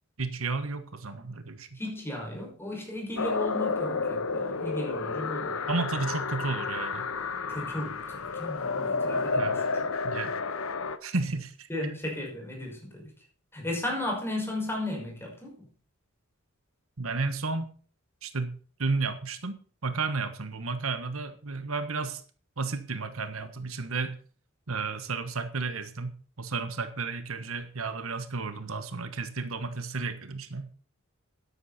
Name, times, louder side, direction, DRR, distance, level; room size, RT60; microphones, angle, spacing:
voice 1, 0.2-1.7 5.7-7.0 9.4-9.6 10.0-10.3 11.0-11.9 17.0-17.7 18.2-22.2 22.6-24.2 24.7-26.1 26.4-30.7, right 3 dB, 80° right, 10 dB, 1.4 m, -32 dB
voice 2, 1.7-5.6 7.5-9.6 11.7-13.1 13.5-15.6, left 1 dB, 10° left, -1 dB, 5.9 m, -35 dB
sound 1, 3.2-11.0, left 4 dB, 80° left, 1.0 m, -31 dB
12.5 x 11.0 x 4.3 m, 0.42 s
head